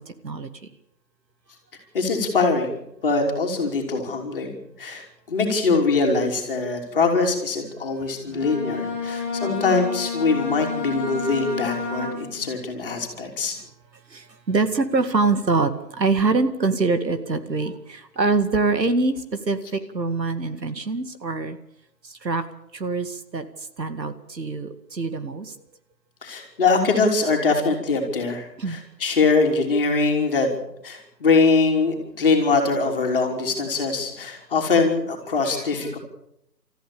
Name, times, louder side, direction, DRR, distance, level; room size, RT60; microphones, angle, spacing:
voice 1, 1.9-2.7 3.0-13.6 26.2-30.5 30.8-36.0, left 4 dB, 35° left, 2 dB, 3.4 m, -22 dB
Bowed string instrument, 8.3-12.5, left 4 dB, 5° right, 5.5 m, -29 dB
voice 2, 14.5-15.7 16.0-19.2 19.5-19.6 19.9-21.6 22.2-22.4 22.8-23.4 23.8-25.5 28.6-28.8, right 3 dB, 80° right, 10 dB, 2.3 m, -23 dB
29.0 x 14.0 x 7.0 m, 0.77 s
figure-of-eight pair, 160°, 50 cm